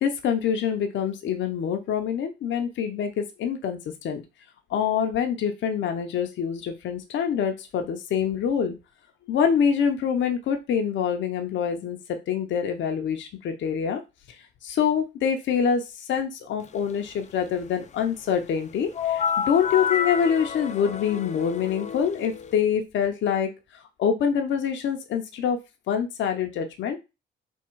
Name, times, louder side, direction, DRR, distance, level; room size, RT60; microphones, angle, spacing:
voice 1, 0.0-4.2 4.7-8.7 9.3-14.0 14.6-23.5 24.0-25.6 25.9-27.0, left 7 dB, 70° left, 5 dB, 0.7 m, -25 dB
sound 1, 18.9-22.5, left 7 dB, 35° left, 0.5 m, -29 dB
3.6 x 2.4 x 4.4 m, 0.26 s
cardioid pair, 90°, 20 cm